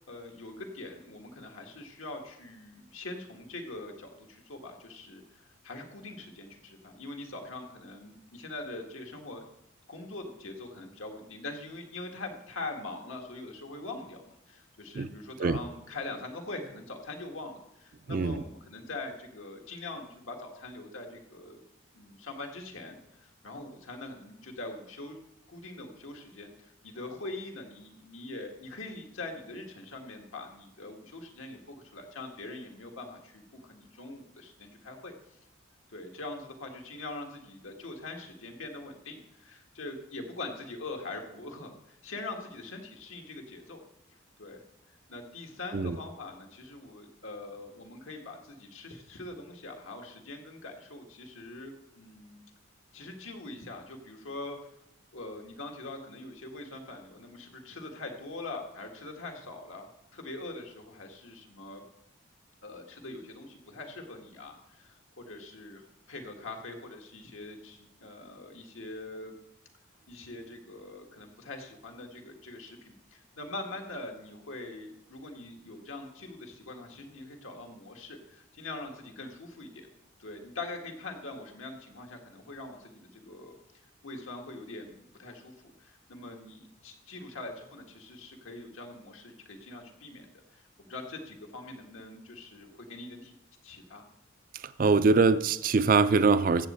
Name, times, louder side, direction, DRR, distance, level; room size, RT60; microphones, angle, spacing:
voice 1, 0.1-9.4 9.9-21.6 21.9-25.2 25.5-35.4 35.9-43.8 44.4-44.6 45.1-52.4 52.9-54.6 55.1-61.8 62.6-65.8 66.1-69.4 70.1-79.9 80.2-83.5 84.0-93.3 93.6-94.0, left 2 dB, 85° left, 3 dB, 1.7 m, -43 dB
voice 2, 18.1-18.4 45.7-46.0 94.5-96.7, right 4 dB, 45° right, 14 dB, 0.4 m, -23 dB
14.5 x 7.5 x 4.3 m, 0.83 s
head